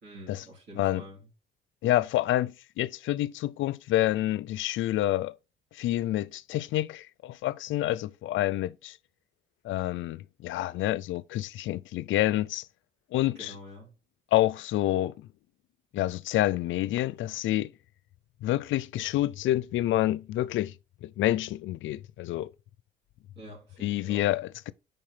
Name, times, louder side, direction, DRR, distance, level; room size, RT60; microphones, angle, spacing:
voice 1, 0.0-1.3 13.4-13.9 23.4-24.3, equal, 60° right, 3.6 m, -47 dB
voice 2, 1.8-5.3 5.7-9.0 9.6-12.7 13.1-13.6 14.3-15.3 15.9-17.7 18.4-20.7 21.0-22.5 23.8-24.7, left 14 dB, 75° left, 0.4 m, -28 dB
5.4 x 4.3 x 5.5 m
cardioid pair, 90°, 20 cm